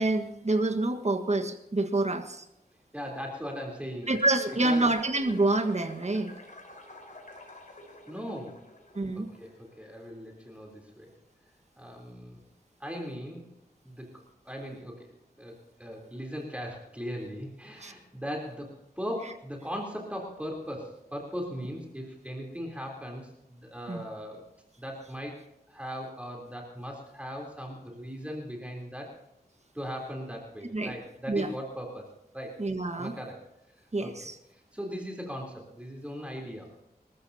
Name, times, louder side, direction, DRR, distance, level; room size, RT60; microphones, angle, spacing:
voice 1, 0.0-2.4 4.1-6.3 8.9-9.3 17.8-17.9 23.9-24.0 30.7-30.9 31.3-31.5 32.6-33.1 33.9-34.4, right 2 dB, 45° right, 6 dB, 1.5 m, -27 dB
voice 2, 2.9-4.1 4.6-4.9 8.1-8.6 9.2-11.1 11.8-12.4 12.8-13.4 13.8-14.1 14.4-15.1 15.4-24.4 24.8-25.4 25.7-29.1 29.7-32.1 32.3-32.6 32.9-33.4 34.0-34.1 34.5-36.7, equal, 10° right, 0 dB, 3.6 m, -38 dB
sound 1, 4.0-9.8, left 1 dB, 50° left, 4.7 m, -49 dB
27.0 x 14.0 x 2.9 m, 0.83 s
wide cardioid pair, 75°, 17 cm